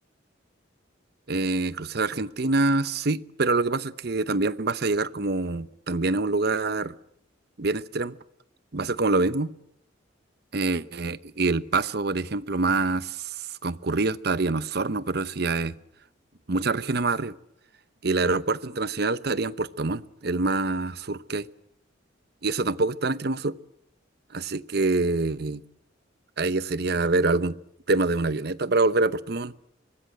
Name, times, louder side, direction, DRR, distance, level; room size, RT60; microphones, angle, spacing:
voice 1, 1.3-6.9 7.6-8.2 8.7-9.5 10.5-15.7 16.5-17.3 18.0-21.5 22.4-23.5 24.3-25.6 26.4-27.6 27.9-29.5, right 3 dB, 55° right, 15 dB, 0.8 m, -25 dB
24.5 x 20.0 x 7.8 m, 0.76 s
head